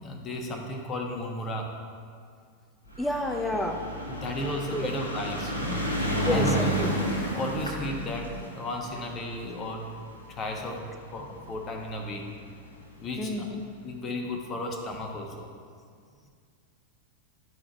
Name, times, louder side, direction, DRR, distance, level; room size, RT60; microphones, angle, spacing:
voice 1, 0.0-1.8 4.1-5.8 6.3-6.5 6.8-7.0 7.3-9.9 10.3-10.9 11.1-12.3 13.0-13.5 13.8-15.5, left 1 dB, 25° left, 2 dB, 1.3 m, -34 dB
sound 1, 2.9-11.4 12.2-12.3 12.5-12.6 12.8-12.9, equal, 80° left, 1.4 m, -31 dB
voice 2, 3.0-3.9 4.7-4.9 6.2-6.9 13.2-13.6, left 1 dB, 5° left, 5 dB, 0.8 m, -30 dB
12.0 x 5.0 x 4.2 m, 2.1 s
figure-of-eight pair, 90°, 0 cm